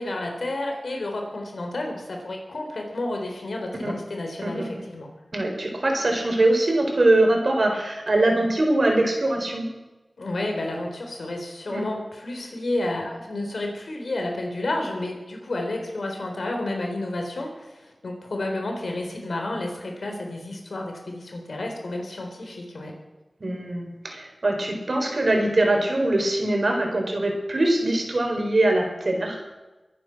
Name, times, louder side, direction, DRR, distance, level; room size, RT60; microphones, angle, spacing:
voice 1, 0.0-5.1 10.2-22.9, left 2 dB, 85° left, 2 dB, 3.8 m, -31 dB
voice 2, 4.4-4.8 5.3-9.7 11.7-11.9 23.4-29.4, right 1 dB, 60° right, 3 dB, 4.1 m, -22 dB
23.0 x 10.0 x 6.0 m, 1.1 s
wide cardioid pair, 55°, 0 cm